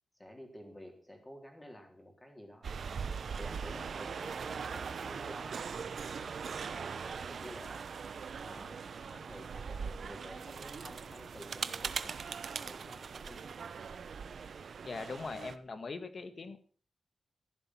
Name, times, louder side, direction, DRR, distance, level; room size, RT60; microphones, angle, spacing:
voice 1, 0.1-2.7 3.3-13.5, equal, 15° left, 3 dB, 4.0 m, -52 dB
sound 1, 2.6-15.6, right 6 dB, 70° right, 0.9 m, -41 dB
voice 2, 14.8-16.6, left 4 dB, 50° left, 10 dB, 1.8 m, -41 dB
14.5 x 11.5 x 6.0 m, 0.41 s
wide cardioid pair, 125°, 0 cm